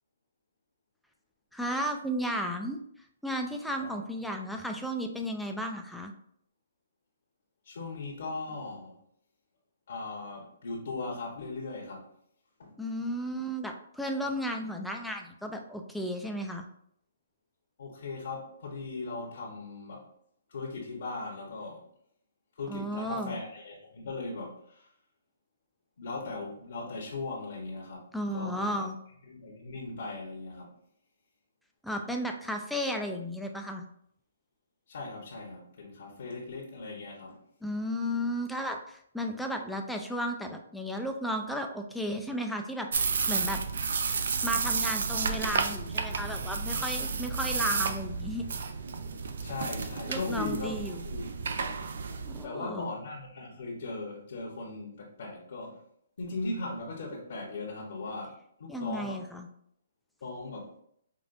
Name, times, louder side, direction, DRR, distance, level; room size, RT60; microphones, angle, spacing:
voice 1, 1.5-2.8 3.2-6.1 12.8-16.6 22.7-23.4 28.1-28.9 31.8-33.8 37.6-43.6 44.4-48.4 50.1-51.0 52.3-52.9 58.7-59.5, equal, ahead, 2 dB, 0.4 m, -34 dB
voice 2, 7.6-9.0 9.9-12.1 12.6-12.8 17.8-20.1 20.5-21.9 22.5-24.9 26.0-28.9 29.2-30.8 34.9-37.4 49.4-51.3 52.1-55.8 56.2-59.3 60.2-60.7, left 3 dB, 65° left, -3 dB, 1.0 m, -38 dB
sound 1, 42.9-52.4, right 5 dB, 70° right, 0.4 m, -32 dB
5.0 x 2.4 x 2.5 m, 0.69 s
hypercardioid pair, 160°, 0 cm